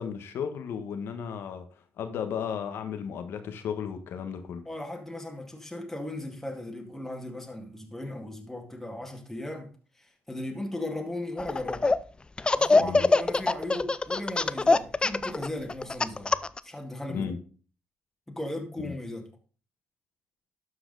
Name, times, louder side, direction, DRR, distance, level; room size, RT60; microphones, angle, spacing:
voice 1, 0.0-1.6 2.0-4.7 12.8-13.1 17.1-17.4 18.8-18.9, left 7 dB, 75° left, 1.4 m, -34 dB
voice 2, 4.7-11.9 12.5-16.4 16.6-17.3 18.3-19.3, left 1 dB, 5° left, 2.1 m, -37 dB
Laughter, 11.4-12.0 12.4-16.6, left 3 dB, 25° left, 0.5 m, -22 dB
12.5 x 4.8 x 4.0 m
supercardioid pair, 70°, 4 cm